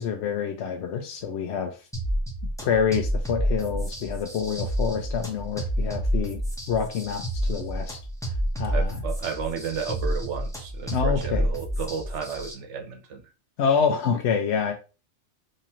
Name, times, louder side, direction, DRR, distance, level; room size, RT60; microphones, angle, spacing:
voice 1, 0.0-1.8 2.6-6.4 6.7-8.0 8.6-9.0 10.9-11.5 13.6-14.7, left 6 dB, 75° left, 3 dB, 0.8 m, -27 dB
sound 1, 1.9-12.5, equal, 5° left, 0.7 m, -29 dB
voice 2, 8.6-13.2, right 6 dB, 75° right, 6 dB, 1.0 m, -33 dB
3.8 x 2.8 x 2.9 m, 0.33 s
omnidirectional pair, 1.2 m